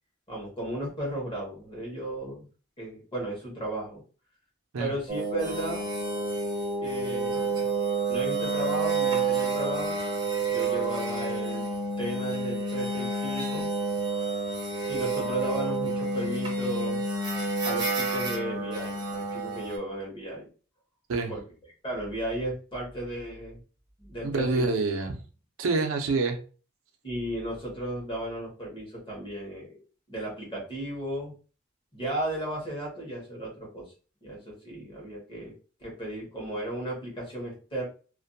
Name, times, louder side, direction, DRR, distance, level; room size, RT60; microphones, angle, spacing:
voice 1, 0.3-2.5 2.8-4.0 4.8-5.9 6.8-7.7 8.1-10.1 10.5-11.7 12.0-13.7 14.9-17.0 17.6-20.5 21.3-21.4 21.8-23.6 24.0-24.6 27.0-29.8 30.1-31.3 31.9-33.9 34.2-35.5 35.8-37.9, right 1 dB, 25° left, -3 dB, 1.0 m, -34 dB
sound 1, 5.1-19.8, right 3 dB, 20° right, 0.6 m, -29 dB
voice 2, 24.2-25.1 25.6-26.4, right 3 dB, 90° right, 4 dB, 0.5 m, -26 dB
2.5 x 2.2 x 2.6 m, 0.38 s
head